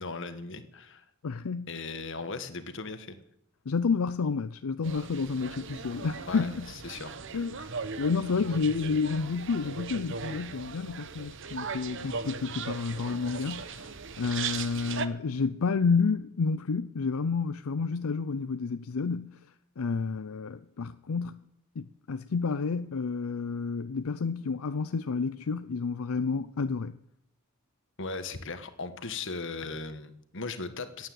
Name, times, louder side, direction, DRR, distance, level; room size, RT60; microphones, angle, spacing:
voice 1, 0.0-1.0 1.7-3.2 6.3-7.2 7.6-7.8 28.0-31.1, left 3 dB, 60° left, 1.4 m, -38 dB
voice 2, 1.2-1.7 3.7-6.7 7.3-7.5 8.0-19.4 19.8-21.4 21.8-26.9, left 4 dB, 85° left, 0.5 m, -30 dB
sound 1, 4.8-15.1, right 5 dB, 60° right, 0.9 m, -38 dB
15.5 x 9.4 x 7.7 m
head